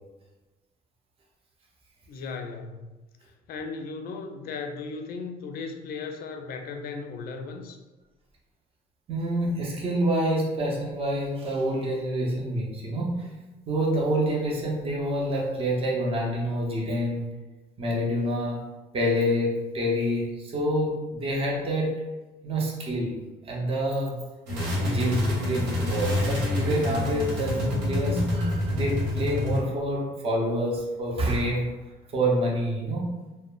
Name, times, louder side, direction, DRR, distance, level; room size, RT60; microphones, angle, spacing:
voice 1, 2.1-2.8 3.5-7.8, left 4 dB, 60° left, 4 dB, 0.4 m, -36 dB
voice 2, 9.1-13.3 13.7-17.3 17.8-18.6 18.9-22.0 22.4-23.2 23.4-24.2 24.8-31.7 32.1-33.1, equal, 35° right, -3 dB, 0.7 m, -27 dB
sound 1, 24.5-29.6, left 1 dB, 85° right, 1.0 m, -27 dB
2.1 x 2.0 x 3.7 m, 1.1 s
cardioid pair, 110°, 17 cm